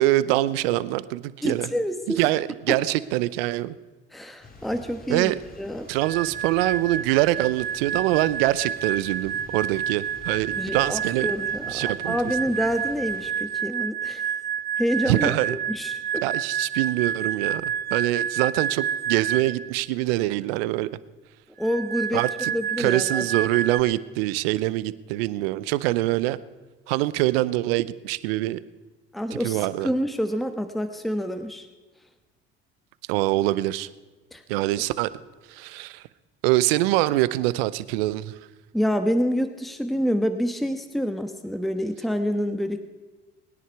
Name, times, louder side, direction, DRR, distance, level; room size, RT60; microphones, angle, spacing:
voice 1, 0.0-1.7 2.2-3.7 5.1-5.4 5.9-11.3 11.7-12.2 15.1-15.6 16.2-20.9 22.1-22.5 22.8-26.4 26.9-28.6 29.3-29.9 33.1-33.9 34.5-35.1 35.5-36.0 36.4-38.3, right 17 dB, 80° right, 17 dB, 0.7 m, -24 dB
voice 2, 1.4-2.2 2.7-2.8 4.1-5.3 5.6-5.9 10.6-14.3 14.8-15.3 15.7-16.2 21.6-22.2 22.5-23.3 29.1-31.7 34.3-34.4 38.7-42.8, equal, ahead, 8 dB, 1.2 m, -27 dB
sound 1, 4.4-13.3, left 2 dB, 30° left, 2.9 m, -47 dB
sound 2, 6.0-19.7 21.6-23.8, right 8 dB, 35° right, 0.8 m, -29 dB
23.5 x 10.0 x 4.7 m, 1.2 s
hypercardioid pair, 65°, 29 cm